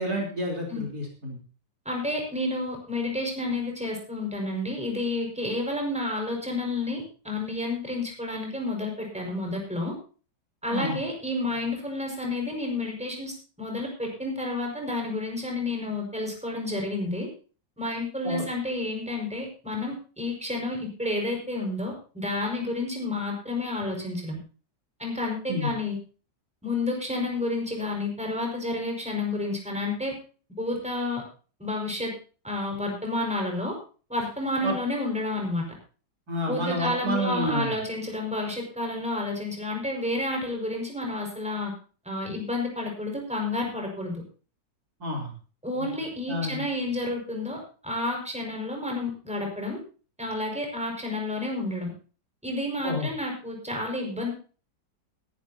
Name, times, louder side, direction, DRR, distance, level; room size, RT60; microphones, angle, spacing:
voice 1, 0.0-1.4 10.7-11.0 18.2-18.4 25.5-25.7 34.6-34.7 36.3-37.7 45.0-45.3 45.8-45.9 46.3-46.6 52.8-53.1, equal, 55° right, 0 dB, 4.2 m, -29 dB
voice 2, 1.9-9.9 10.6-17.3 17.8-24.4 25.0-26.0 26.6-30.2 30.6-31.2 31.6-32.1 32.4-33.8 34.1-35.7 36.5-41.7 42.1-44.2 45.6-49.8 50.2-51.9 52.4-54.3, left 2 dB, 5° right, 1 dB, 5.3 m, -30 dB
21.0 x 11.0 x 2.8 m, 0.37 s
omnidirectional pair, 2.0 m